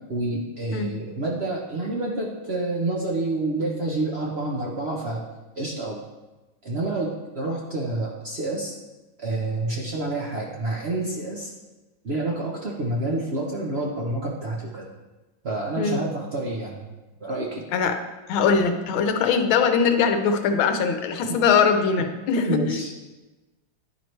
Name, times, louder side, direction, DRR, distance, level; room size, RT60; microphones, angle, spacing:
voice 1, 0.1-5.2 5.6-6.0 6.6-8.7 9.2-11.5 12.0-14.8 15.4-16.9 17.2-17.6 21.3-21.4 22.4-22.9, right 2 dB, 60° right, -2 dB, 0.6 m, -28 dB
voice 2, 18.3-22.8, left 6 dB, 80° left, 6 dB, 1.5 m, -21 dB
10.5 x 4.5 x 3.2 m, 1.1 s
omnidirectional pair, 2.2 m